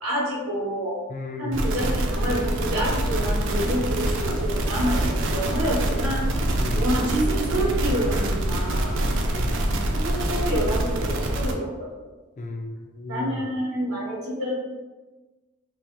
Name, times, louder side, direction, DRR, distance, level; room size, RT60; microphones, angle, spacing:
voice 1, 0.0-1.0 1.4-9.0 9.9-12.0 13.1-14.6, right 1 dB, 90° right, -6 dB, 1.5 m, -28 dB
voice 2, 1.1-1.7 6.6-6.9 9.3-9.6 12.4-13.4, left 1 dB, 35° left, 3 dB, 0.3 m, -34 dB
sound 1, 1.5-11.5, right 1 dB, 55° right, 0.4 m, -25 dB
4.5 x 2.0 x 2.8 m, 1.2 s
head